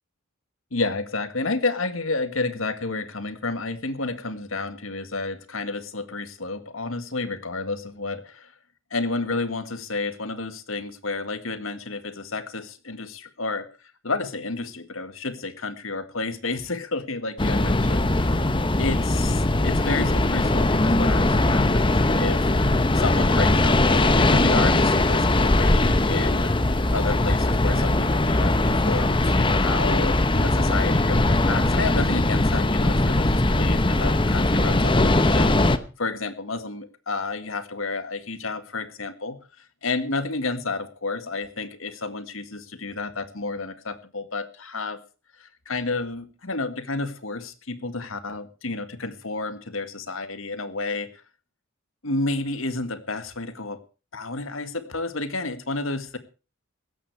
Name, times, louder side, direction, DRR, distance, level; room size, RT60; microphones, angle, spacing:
voice 1, 0.7-8.5 8.9-13.7 14.0-18.4 18.8-26.5 26.9-35.7 36.0-39.4 39.8-45.0 45.4-51.1 52.0-53.8 54.1-56.2, left 3 dB, 80° left, 11 dB, 1.9 m, -31 dB
sound 1, 17.4-35.8, left 2 dB, 25° left, 1.0 m, -20 dB
16.5 x 13.5 x 4.8 m, 0.35 s
head